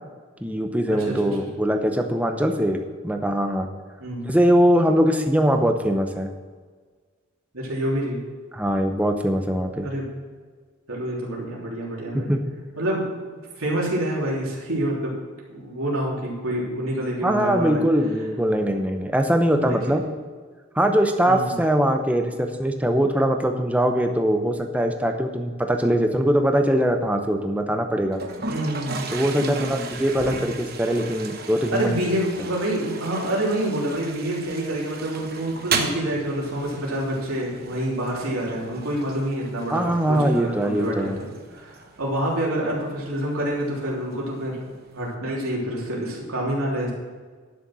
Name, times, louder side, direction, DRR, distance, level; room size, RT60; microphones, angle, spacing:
voice 1, 0.4-2.8 3.0-3.7 4.2-6.3 8.5-9.9 12.3-12.4 17.2-20.0 20.7-28.2 29.1-32.0 39.7-41.2, equal, 5° right, 5 dB, 0.7 m, -22 dB
voice 2, 4.0-4.3 7.5-8.2 9.8-10.1 10.9-12.3 12.8-13.1 13.6-15.1 15.5-17.8 19.6-20.0 21.3-21.5 28.5-29.1 29.4-30.0 31.7-41.1 41.5-44.6 44.9-46.9, right 1 dB, 85° right, -4 dB, 3.3 m, -27 dB
Toilet flush, 28.1-45.1, right 4 dB, 45° right, 1.0 m, -36 dB
11.5 x 6.8 x 6.2 m, 1.5 s
head